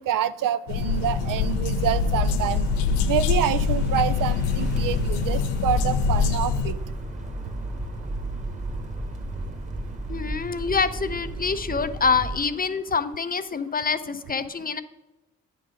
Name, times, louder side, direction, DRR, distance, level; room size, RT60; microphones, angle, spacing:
voice 1, 0.0-2.7 3.1-6.8, right 11 dB, 65° right, 14 dB, 0.5 m, -27 dB
sound 1, 0.7-6.7, left 6 dB, 85° left, 0.5 m, -24 dB
sound 2, 0.8-12.4, right 1 dB, 20° right, 1.3 m, -33 dB
voice 2, 10.1-14.8, left 5 dB, 25° left, 12 dB, 0.5 m, -26 dB
9.3 x 3.8 x 5.0 m, 1.0 s
hypercardioid pair, 50°, 36 cm